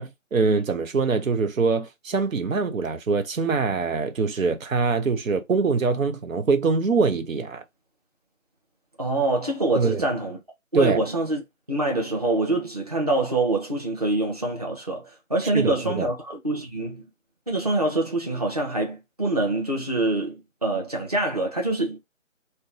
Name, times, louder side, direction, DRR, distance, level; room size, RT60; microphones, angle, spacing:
voice 1, 0.0-7.6 9.7-10.1 10.7-11.0 15.5-16.1, right 4 dB, 85° right, 0.7 m, -23 dB
voice 2, 9.0-10.4 10.7-11.4 11.7-17.0 17.5-22.0, right 2 dB, 30° right, 0.8 m, -25 dB
2.7 x 2.2 x 3.7 m
figure-of-eight pair, 170°, 39 cm